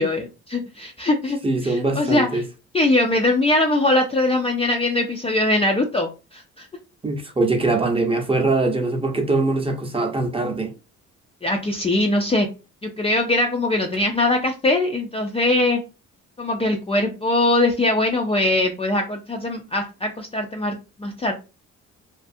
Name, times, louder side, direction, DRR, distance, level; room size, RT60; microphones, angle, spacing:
voice 1, 0.0-1.4 1.6-2.4 2.7-6.7 11.4-12.5 12.8-15.8 16.4-21.3, left 2 dB, 20° left, 0.4 m, -21 dB
voice 2, 1.4-2.4 7.0-10.7, right 2 dB, 20° right, 0.7 m, -22 dB
2.5 x 2.4 x 2.5 m
cardioid pair, 90°, 30 cm